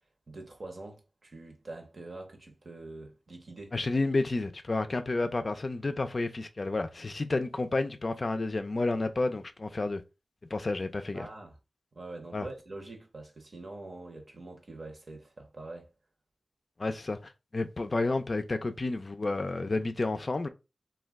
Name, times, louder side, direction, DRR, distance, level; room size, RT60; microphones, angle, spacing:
voice 1, 0.3-3.8 11.1-11.6 11.9-15.9, right 2 dB, 55° right, 0.8 m, -44 dB
voice 2, 3.7-10.0 10.5-11.3 12.3-12.5 16.8-17.2 17.5-20.5, left 2 dB, 50° left, 0.3 m, -30 dB
2.3 x 2.1 x 3.4 m
cardioid pair, 55°, 0 cm